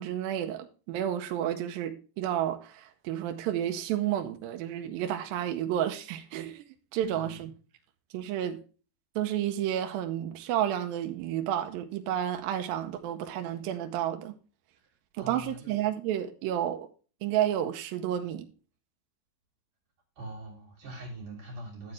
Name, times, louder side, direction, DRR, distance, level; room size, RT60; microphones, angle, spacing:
voice 1, 0.0-6.6 6.9-7.5 8.1-8.6 9.2-14.4 15.2-16.9 17.2-18.5, right 11 dB, 80° right, 2.4 m, -31 dB
voice 2, 7.1-7.4 14.8-15.8 20.2-21.9, right 1 dB, 50° right, 4.4 m, -43 dB
12.0 x 7.6 x 3.2 m
omnidirectional pair, 4.4 m